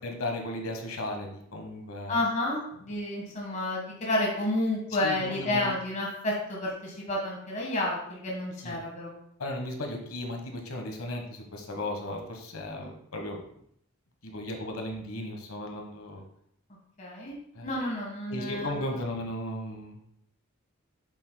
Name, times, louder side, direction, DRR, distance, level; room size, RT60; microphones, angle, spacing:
voice 1, 0.0-2.2 5.0-5.7 8.6-8.8 9.4-13.4 14.2-16.2 17.5-17.8 18.3-20.0, left 1 dB, 80° left, 3 dB, 1.3 m, -35 dB
voice 2, 2.1-9.1 12.8-12.9 17.0-17.4 17.6-18.8, left 1 dB, 35° left, -3 dB, 1.5 m, -30 dB
7.7 x 7.3 x 2.2 m, 0.69 s
head